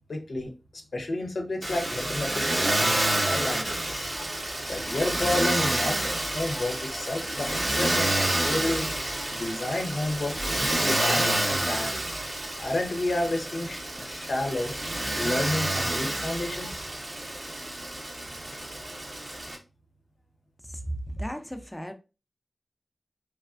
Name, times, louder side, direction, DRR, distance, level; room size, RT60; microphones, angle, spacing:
voice 1, 0.1-0.5 0.9-4.1 4.7-12.0 12.6-14.7 15.1-16.8, left 2 dB, 85° left, 0.5 m, -31 dB
Motor vehicle (road), 1.6-19.6, right 1 dB, 55° right, 0.8 m, -29 dB
voice 2, 20.6-21.9, right 1 dB, 10° left, 0.5 m, -35 dB
3.2 x 2.3 x 2.4 m
cardioid pair, 45°, 0 cm